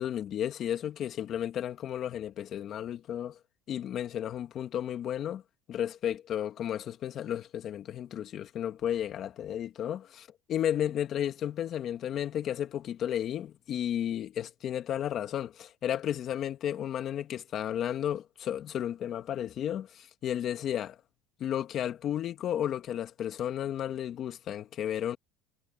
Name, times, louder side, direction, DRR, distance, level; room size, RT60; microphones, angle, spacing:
voice 1, 0.0-3.4 3.7-5.4 5.7-21.0 21.4-25.2, left 10 dB, 45° left, 2.1 m, -33 dB
supercardioid pair, 120°, 0 cm